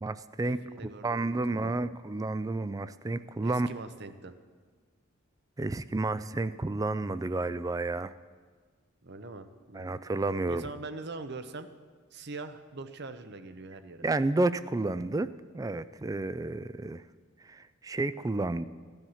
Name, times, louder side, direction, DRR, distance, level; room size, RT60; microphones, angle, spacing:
voice 1, 0.0-0.6 1.0-3.7 5.6-8.1 9.7-10.6 14.0-17.0 17.4-18.6, right 2 dB, 15° right, 15 dB, 0.3 m, -31 dB
voice 2, 0.6-1.7 3.4-4.3 9.0-10.0 10.5-11.7 12.1-14.0, right 3 dB, 55° right, 10 dB, 0.8 m, -42 dB
15.0 x 11.0 x 5.7 m, 1.5 s
head